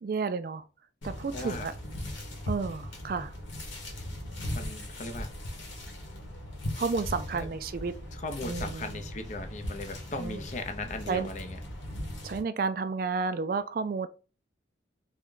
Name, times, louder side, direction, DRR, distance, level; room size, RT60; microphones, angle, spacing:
voice 1, 0.0-0.6 1.0-1.7 2.5-3.3 6.8-7.9 8.4-9.1 10.2-10.4 11.1-11.3 12.2-14.1, right 4 dB, 50° right, 0.3 m, -31 dB
sound 1, 1.0-12.4, left 1 dB, 85° left, 1.0 m, -39 dB
voice 2, 1.3-1.7 4.5-5.3 7.3-7.5 8.2-11.6, left 2 dB, 40° left, 0.5 m, -38 dB
3.4 x 2.1 x 3.7 m
head